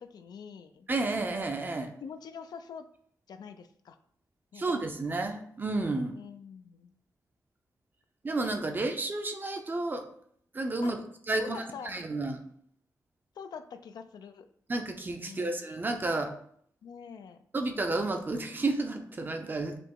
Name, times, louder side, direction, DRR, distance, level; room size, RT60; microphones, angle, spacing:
voice 1, 0.0-0.9 2.0-2.9 3.3-4.0 4.5-4.7 6.0-6.9 8.7-8.9 10.8-11.0 11.4-12.0 13.4-14.5 15.2-15.7 16.8-17.4, left 6 dB, 80° left, 9 dB, 0.4 m, -45 dB
voice 2, 0.9-1.9 4.5-6.1 8.2-10.1 10.5-11.0 11.3-12.4 14.7-16.4 17.5-19.8, right 2 dB, 30° right, 5 dB, 0.5 m, -31 dB
4.9 x 2.8 x 3.7 m, 0.63 s
wide cardioid pair, 125°, 7 cm